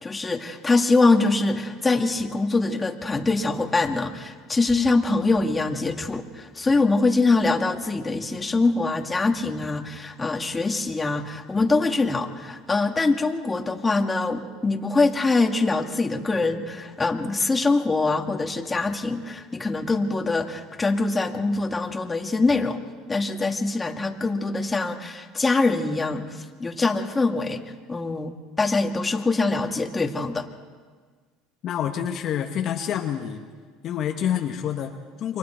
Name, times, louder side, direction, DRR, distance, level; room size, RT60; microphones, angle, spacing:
voice 1, 0.0-22.8 23.1-27.6 27.9-28.3 28.6-30.5, left 3 dB, 20° left, 3 dB, 2.2 m, -23 dB
voice 2, 31.6-33.4 33.8-35.4, left 9 dB, 50° left, 3 dB, 1.6 m, -27 dB
29.0 x 24.0 x 4.6 m, 1.5 s
hypercardioid pair, 80°, 0 cm